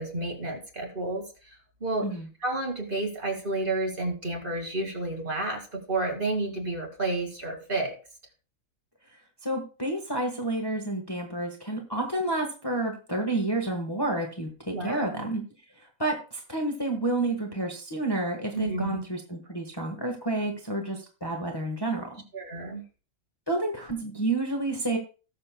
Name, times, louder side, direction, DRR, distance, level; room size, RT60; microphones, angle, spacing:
voice 1, 0.0-2.0 2.4-7.9 14.7-15.2 18.5-19.0 22.3-22.8, right 2 dB, 35° right, 1 dB, 2.2 m, -31 dB
voice 2, 9.4-15.4 15.8-22.2 23.5-25.0, right 2 dB, 15° left, 2 dB, 1.3 m, -30 dB
18.5 x 6.7 x 2.2 m, 0.35 s
omnidirectional pair, 1.5 m